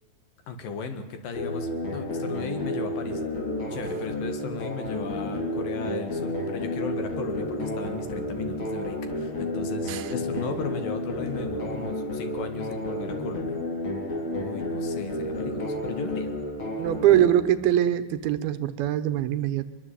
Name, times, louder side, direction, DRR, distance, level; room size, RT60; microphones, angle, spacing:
voice 1, 0.5-3.2 3.7-13.6 14.3-16.3, left 5 dB, 65° left, 8 dB, 3.4 m, -36 dB
sound 1, 1.3-17.3, left 1 dB, 35° left, 4.3 m, -31 dB
voice 2, 16.8-19.6, right 11 dB, 80° right, 12 dB, 2.8 m, -23 dB
23.5 x 22.0 x 8.4 m, 1.1 s
omnidirectional pair, 4.5 m